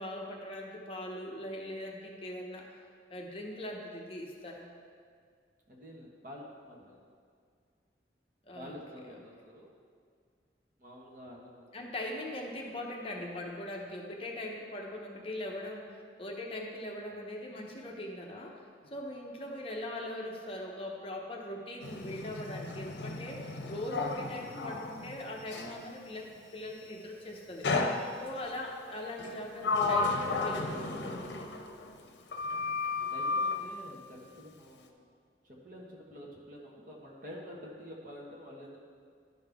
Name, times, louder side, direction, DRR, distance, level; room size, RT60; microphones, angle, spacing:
voice 1, 0.0-2.8 3.1-4.7 8.5-8.8 11.7-18.6 18.9-27.7 28.2-31.3, left 1 dB, 30° left, 0 dB, 0.8 m, -41 dB
voice 2, 5.7-7.0 8.5-9.7 10.8-11.9 18.8-19.0 33.1-35.1 35.4-38.8, equal, 50° right, -2 dB, 1.3 m, -48 dB
Sliding door, 21.8-25.8 27.6-28.5 29.2-32.1 32.3-33.6, left 3 dB, 80° left, 0.7 m, -33 dB
11.5 x 5.5 x 3.5 m, 2.1 s
head